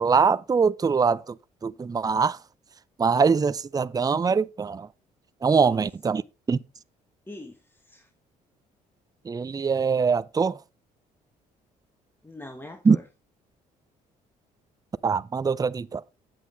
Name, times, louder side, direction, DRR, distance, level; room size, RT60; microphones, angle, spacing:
voice 1, 0.0-1.4 1.6-2.4 3.0-4.9 5.4-6.2 6.5-6.6 9.2-10.6 12.8-13.0 15.0-16.0, right 5 dB, 20° right, 0.5 m, -23 dB
voice 2, 5.4-5.8 7.3-8.1 12.2-13.0, left 1 dB, 10° left, 1.5 m, -42 dB
8.2 x 7.7 x 3.9 m
hypercardioid pair, 55°, 18 cm